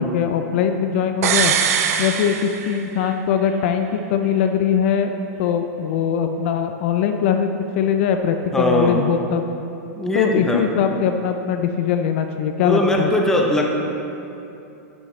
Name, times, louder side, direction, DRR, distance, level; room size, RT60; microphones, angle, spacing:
voice 1, 0.0-1.5 2.0-5.1 5.4-9.4 10.1-13.1, left 8 dB, 50° left, 6 dB, 0.5 m, -21 dB
sound 1, 1.2-3.2 3.5-3.6, right 7 dB, 65° right, 0.7 m, -21 dB
voice 2, 8.5-9.0 9.9-10.7 12.6-13.7, left 1 dB, 5° left, 0 dB, 0.7 m, -20 dB
10.5 x 8.7 x 3.1 m, 2.8 s
supercardioid pair, 160°, 9 cm